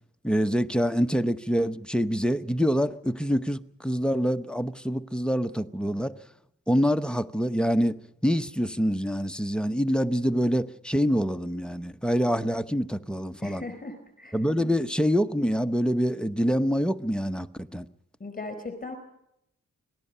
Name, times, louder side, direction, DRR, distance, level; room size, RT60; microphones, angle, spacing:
voice 1, 0.2-6.1 6.7-13.6 14.3-17.5 17.7-17.8, equal, 5° left, 0.9 m, -26 dB
voice 2, 13.4-14.7 18.2-19.0, left 3 dB, 25° left, 4.4 m, -38 dB
26.0 x 19.0 x 5.6 m
wide cardioid pair, 95°, 31 cm